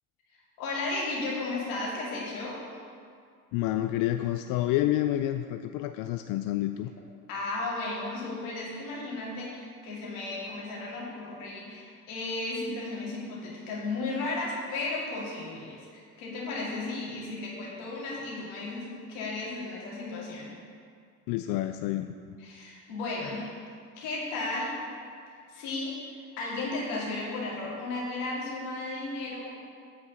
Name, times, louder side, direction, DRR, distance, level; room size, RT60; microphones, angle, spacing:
voice 1, 0.6-2.6 7.3-20.5 22.4-23.6 24.0-24.8 25.5-25.9 26.4-29.5, left 2 dB, 70° left, -4 dB, 2.3 m, -34 dB
voice 2, 3.5-6.9 21.3-22.4, left 14 dB, 55° left, 8 dB, 0.4 m, -29 dB
8.5 x 4.8 x 6.8 m, 2.2 s
figure-of-eight pair, 50°, 42 cm